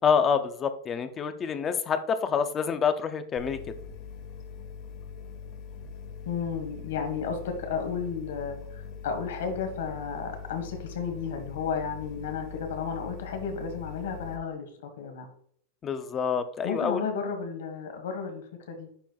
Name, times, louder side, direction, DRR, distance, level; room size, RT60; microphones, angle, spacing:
voice 1, 0.0-3.6 15.8-17.0, left 6 dB, 15° left, 10 dB, 0.4 m, -27 dB
sound 1, 3.4-14.4, left 6 dB, 35° left, 1.1 m, -42 dB
voice 2, 6.2-15.3 16.6-18.9, left 6 dB, 80° left, 5 dB, 1.6 m, -33 dB
10.5 x 4.3 x 2.3 m, 0.63 s
supercardioid pair, 175°, 0 cm